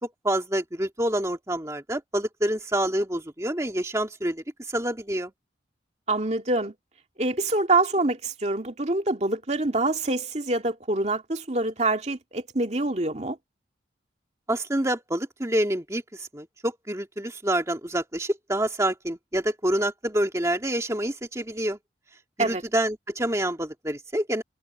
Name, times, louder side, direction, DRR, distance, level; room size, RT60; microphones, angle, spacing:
voice 1, 0.0-5.3 14.5-21.8 22.4-24.4, right 1 dB, 15° right, 2.0 m, -27 dB
voice 2, 6.1-6.7 7.2-13.4 22.4-22.6, right 2 dB, 40° right, 2.3 m, -25 dB
head